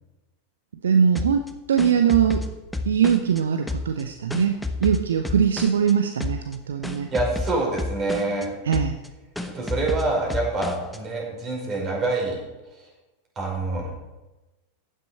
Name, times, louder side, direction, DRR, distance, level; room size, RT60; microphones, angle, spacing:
voice 1, 0.8-2.5 2.9-7.1 8.6-9.0, right 7 dB, 65° right, 7 dB, 0.7 m, -21 dB
sound 1, 1.2-3.4 3.7-5.9 6.2-6.6 6.8-8.5 8.7-9.1 9.4-11.0, left 2 dB, 5° left, 1.0 m, -30 dB
voice 2, 7.1-8.5 9.5-12.4 13.3-13.9, right 2 dB, 30° right, -1 dB, 5.0 m, -26 dB
15.0 x 10.0 x 4.3 m, 1.1 s
figure-of-eight pair, 90°, 0 cm